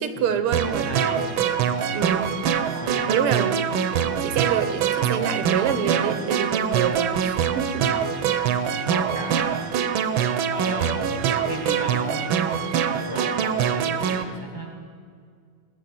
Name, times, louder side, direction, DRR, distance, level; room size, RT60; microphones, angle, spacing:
voice 1, 0.0-0.9 1.9-2.4 3.1-3.6 4.2-7.9, right 8 dB, 90° right, 10 dB, 1.9 m, -26 dB
sound 1, 0.5-14.2, right 8 dB, 70° right, 1.5 m, -24 dB
voice 2, 0.6-1.6 2.7-3.4 8.1-9.7 10.5-14.8, equal, 10° left, 2 dB, 1.7 m, -35 dB
19.5 x 6.9 x 7.7 m, 2.1 s
omnidirectional pair, 2.4 m